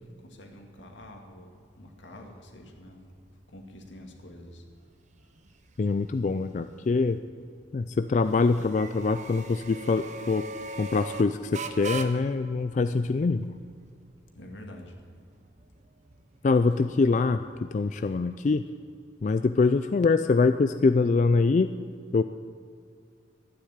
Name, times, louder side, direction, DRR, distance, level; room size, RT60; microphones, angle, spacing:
voice 1, 0.2-3.0 3.5-4.6 14.3-14.9, left 1 dB, 85° left, 2 dB, 2.1 m, -47 dB
sound 1, 0.8-18.0, right 3 dB, 40° right, 0.8 m, -44 dB
voice 2, 5.8-7.2 7.7-10.4 10.8-13.5 16.4-18.6 19.2-21.7 22.1-22.2, left 4 dB, 40° left, 10 dB, 0.3 m, -24 dB
11.5 x 9.9 x 8.7 m, 2.3 s
head